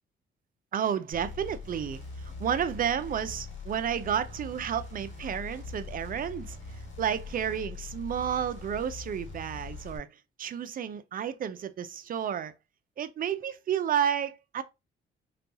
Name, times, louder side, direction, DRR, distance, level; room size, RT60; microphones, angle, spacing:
voice 1, 0.7-6.6 7.0-10.1 10.4-12.5 13.0-14.6, right 9 dB, 45° right, 0.5 m, -31 dB
sound 1, 1.1-10.0, left 4 dB, 75° left, 1.5 m, -42 dB
4.1 x 2.3 x 2.7 m
cardioid pair, 90°, 20 cm